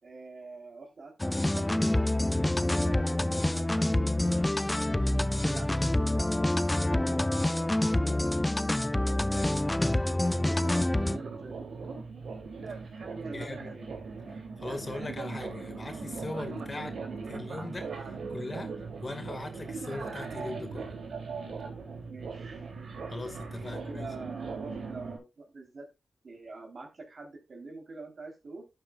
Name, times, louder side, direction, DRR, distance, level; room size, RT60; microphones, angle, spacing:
voice 1, 0.0-1.8 2.4-4.4 5.2-6.7 7.5-8.3 8.9-9.6 10.2-12.0 13.1-14.0 22.1-22.5 23.6-25.9 26.2-28.7, right 3 dB, 60° right, 3.9 m, -46 dB
sound 1, 1.2-11.2, left 1 dB, 15° left, 0.4 m, -27 dB
voice 2, 2.3-2.7 4.9-5.2 10.2-10.5 13.3-13.7 14.6-17.0 17.2-18.7 19.0-20.9 23.1-24.1, left 2 dB, 35° left, 2.1 m, -40 dB
sound 2, 10.4-25.2, right 4 dB, 85° right, 3.2 m, -39 dB
11.5 x 8.6 x 2.5 m
cardioid pair, 75°, 0 cm